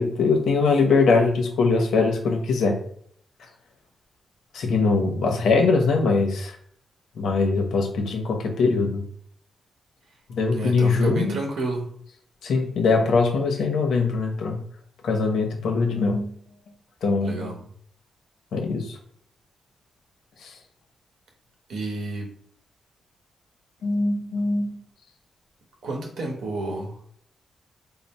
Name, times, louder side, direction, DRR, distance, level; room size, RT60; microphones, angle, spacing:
voice 1, 0.0-2.8 4.5-6.5 7.2-9.0 10.3-11.3 12.4-14.6 15.0-16.3 17.0-17.5 18.5-19.0 20.4-20.5 23.8-24.8, left 4 dB, 80° left, 2 dB, 0.8 m, -22 dB
voice 2, 10.5-11.9 17.2-17.5 21.7-22.3 25.8-26.9, right 2 dB, 85° right, 1 dB, 1.1 m, -30 dB
3.9 x 2.1 x 4.1 m, 0.63 s
wide cardioid pair, 145°, 0 cm